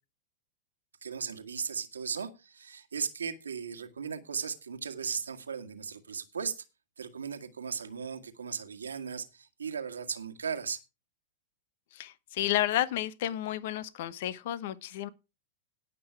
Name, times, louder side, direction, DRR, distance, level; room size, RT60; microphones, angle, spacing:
voice 1, 1.0-6.6 7.0-10.8, right 6 dB, 85° right, 6 dB, 1.7 m, -37 dB
voice 2, 11.9-15.1, left 13 dB, 60° left, 17 dB, 1.0 m, -31 dB
17.5 x 6.2 x 4.6 m, 0.28 s
hypercardioid pair, 105°, 0 cm